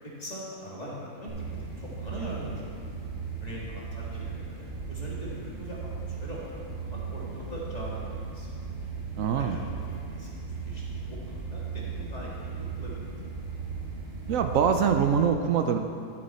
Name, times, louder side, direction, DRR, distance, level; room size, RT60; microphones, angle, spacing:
voice 1, 0.0-2.7 3.4-8.5 9.3-13.1, right 1 dB, 30° left, -6 dB, 2.0 m, -41 dB
sound 1, 1.3-15.2, right 5 dB, 45° right, 1.6 m, -37 dB
voice 2, 9.2-9.6 14.3-15.8, right 7 dB, 75° right, 6 dB, 1.0 m, -24 dB
11.5 x 7.6 x 4.2 m, 2.4 s
omnidirectional pair, 1.5 m